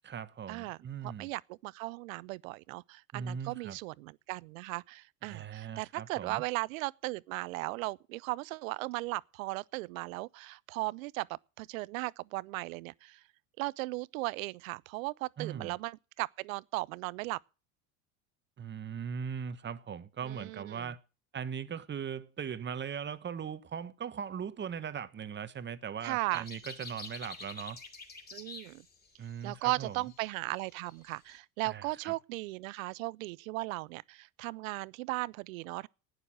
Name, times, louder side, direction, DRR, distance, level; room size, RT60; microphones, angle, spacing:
voice 1, 0.0-1.3 3.1-3.8 5.2-6.4 15.4-15.7 18.6-21.0 21.3-27.8 29.2-30.0 31.6-32.1, right 7 dB, 25° right, 1.2 m, -39 dB
voice 2, 1.0-13.2 13.6-17.4 20.2-20.9 26.0-26.4 28.3-28.8 29.4-35.9, right 22 dB, 75° right, 0.6 m, -37 dB
sound 1, 26.3-31.4, left 3 dB, 20° left, 3.1 m, -48 dB
11.0 x 9.7 x 7.5 m
hypercardioid pair, 85°, 42 cm